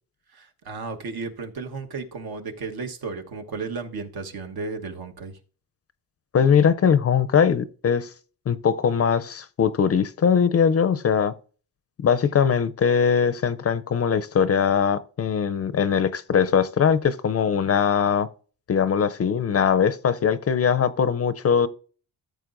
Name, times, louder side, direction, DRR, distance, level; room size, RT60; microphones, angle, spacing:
voice 1, 0.3-5.3, right 4 dB, 65° right, 1.3 m, -34 dB
voice 2, 6.3-8.1 8.5-11.3 12.0-18.3 18.7-21.7, left 7 dB, 40° left, 0.5 m, -21 dB
14.0 x 8.0 x 2.6 m
cardioid pair, 90°, 40 cm